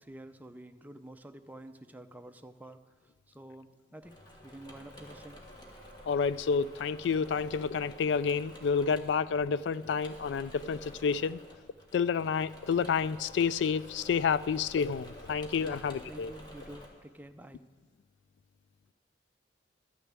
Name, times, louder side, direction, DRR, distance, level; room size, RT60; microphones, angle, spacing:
voice 1, 0.0-5.4 15.6-17.6, right 1 dB, 10° right, 7 dB, 0.5 m, -49 dB
Engine / Mechanisms, 4.0-16.9, equal, 25° left, 1.6 m, -51 dB
voice 2, 6.1-11.4 11.9-16.3, left 6 dB, 75° left, 18 dB, 0.3 m, -29 dB
13.0 x 6.8 x 8.8 m, 1.5 s
head